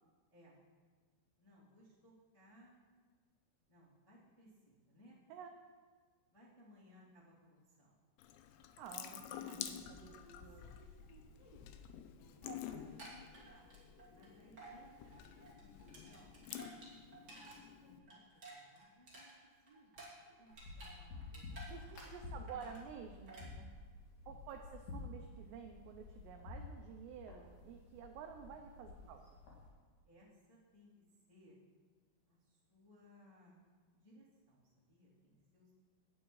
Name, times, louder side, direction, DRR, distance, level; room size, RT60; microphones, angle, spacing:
voice 1, 0.3-0.6 1.4-2.8 3.7-5.2 6.3-8.0 10.2-11.6 11.9-12.7 13.0-13.6 14.1-16.4 17.0-17.4 17.8-18.2 18.5-19.3 19.6-20.0 20.2-21.4 21.7-22.6 24.3-24.4 29.0-29.1 30.0-30.9 31.3-31.6 32.3-33.6 33.9-35.7, equal, 15° left, -9 dB, 1.2 m, -64 dB
Water tap faucet / Sink (filling or washing) / Drip, 8.2-18.0, left 10 dB, 90° left, 2.6 m, -50 dB
voice 2, 8.8-10.7 12.4-12.6 21.7-23.7 24.3-29.2, right 7 dB, 85° right, 4 dB, 2.4 m, -51 dB
sound 1, 12.8-14.3 14.6-14.8 15.1-17.6 17.9-20.9 21.2-22.2 22.5-22.8 23.3-23.5, right 2 dB, 30° right, 2.0 m, -54 dB
sound 2, 20.5-29.7, left 3 dB, 50° left, 2.6 m, -51 dB
18.0 x 9.6 x 3.2 m, 1.5 s
omnidirectional pair, 5.7 m